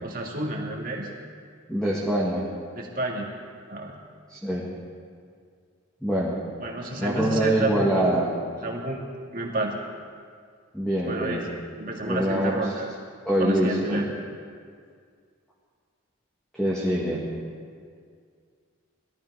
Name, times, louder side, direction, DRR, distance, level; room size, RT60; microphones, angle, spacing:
voice 1, 0.0-1.1 2.8-3.3 3.7-3.9 6.6-8.2 8.6-9.0 9.3-9.7 11.1-11.5 11.8-12.9 13.4-14.1, right 1 dB, 45° right, -1 dB, 2.1 m, -30 dB
voice 2, 1.7-2.5 4.3-4.7 6.0-6.4 7.0-8.3 10.7-11.5 12.0-12.6 13.3-14.0 16.5-17.2, right 1 dB, 5° left, -7 dB, 1.9 m, -24 dB
21.0 x 14.0 x 4.9 m, 2.1 s
head